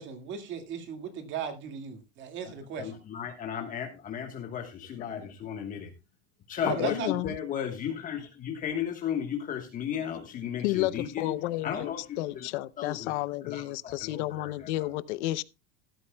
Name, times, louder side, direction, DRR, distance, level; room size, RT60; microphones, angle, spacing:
voice 1, 0.0-3.0 6.6-7.1, right 7 dB, 35° right, 2.1 m, -36 dB
voice 2, 2.4-5.9 6.5-11.4 11.6-12.5 12.8-13.2 13.4-14.9, left 8 dB, 25° left, 1.3 m, -35 dB
voice 3, 6.7-7.3 10.6-11.9 12.2-15.4, left 17 dB, 90° left, 0.8 m, -31 dB
16.0 x 12.5 x 2.3 m
cardioid pair, 175°, 33 cm